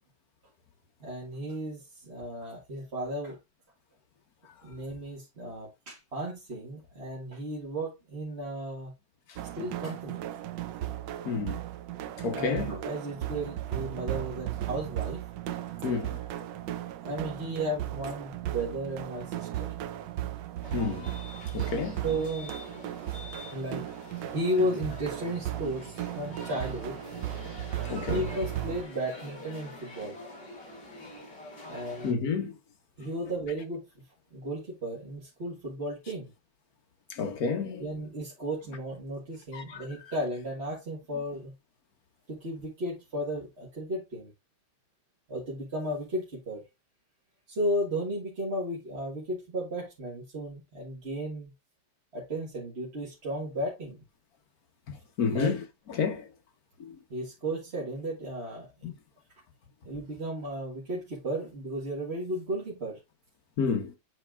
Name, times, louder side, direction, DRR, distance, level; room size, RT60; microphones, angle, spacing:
voice 1, 1.0-3.4 4.6-8.9 9.6-10.2 12.3-15.2 17.0-19.7 22.0-22.6 23.5-23.8 24.1-27.0 28.1-30.2 31.6-32.2 33.0-34.0 34.3-36.3 37.8-41.5 42.3-44.3 45.3-46.6 47.5-51.5 52.1-54.0 55.3-55.5 57.1-58.7 59.8-63.0, right 1 dB, 35° right, 1.6 m, -34 dB
sound 1, 9.4-28.8, right 13 dB, 75° right, 1.2 m, -36 dB
voice 2, 11.2-11.6 12.2-12.7 15.8-16.2 20.7-21.1 21.5-22.0 27.4-27.6 27.9-28.3 31.6-31.7 32.0-32.5 37.1-37.9 39.5-39.8 54.9-55.6 55.9-56.3 56.8-56.9 58.8-58.9 63.6-64.0, left 5 dB, 55° left, 1.5 m, -30 dB
sound 2, 20.6-32.1, left 2 dB, 30° left, 4.0 m, -46 dB
9.6 x 4.2 x 2.4 m
omnidirectional pair, 2.1 m